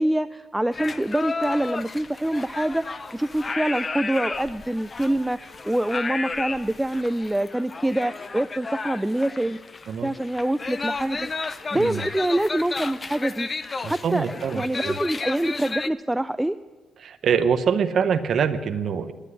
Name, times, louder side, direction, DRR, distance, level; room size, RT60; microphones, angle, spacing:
voice 1, 0.0-9.6 10.0-13.5 13.9-16.6, right 1 dB, 10° right, 12 dB, 0.3 m, -25 dB
sound 1, 0.7-15.9, left 4 dB, 30° left, 0.6 m, -33 dB
voice 2, 11.7-12.1 13.8-15.0 17.0-19.1, right 7 dB, 60° right, 9 dB, 0.7 m, -24 dB
9.9 x 9.6 x 9.8 m, 1.3 s
cardioid pair, 90°, 0 cm